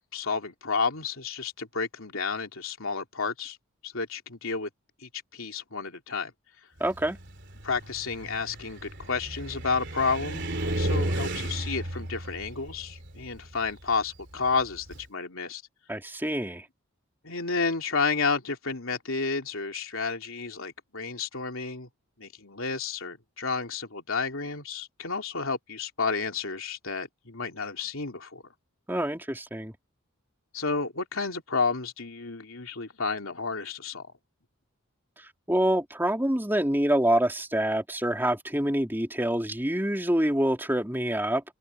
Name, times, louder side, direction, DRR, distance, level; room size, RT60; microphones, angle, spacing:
voice 1, 0.0-3.6 3.8-4.7 5.0-6.3 7.6-15.6 17.2-21.9 22.2-28.4 30.5-34.0, left 4 dB, 75° left, 3.1 m, -31 dB
voice 2, 6.8-7.2 15.9-16.6 28.9-29.7 35.5-41.4, right 1 dB, 10° right, 3.3 m, -26 dB
Car, 6.8-15.1, right 1 dB, 55° right, 3.5 m, -34 dB
head